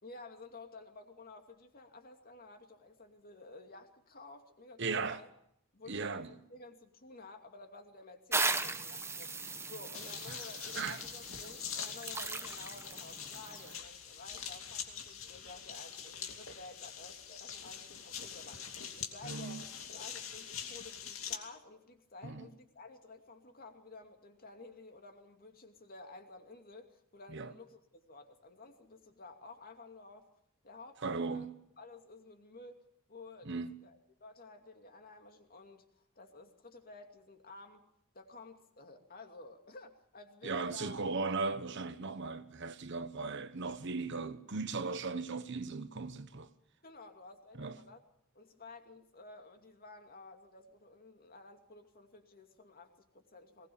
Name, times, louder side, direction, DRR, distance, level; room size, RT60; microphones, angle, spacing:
voice 1, 0.0-5.3 5.7-30.3 30.6-31.5 31.8-37.8 38.1-41.0 46.8-48.0 48.3-53.7, left 3 dB, 45° left, 2.6 m, -53 dB
voice 2, 4.8-5.2 5.9-6.3 10.3-10.4 10.7-11.0 19.2-19.6 22.2-22.5 27.3-27.5 31.0-31.5 33.4-33.7 40.4-46.5 47.6-47.8, right 4 dB, 60° right, 1.1 m, -37 dB
sound 1, 8.3-13.8, right 3 dB, 15° right, 1.0 m, -38 dB
sound 2, 9.9-21.4, left 8 dB, 80° left, 2.6 m, -44 dB
20.5 x 19.5 x 7.1 m
head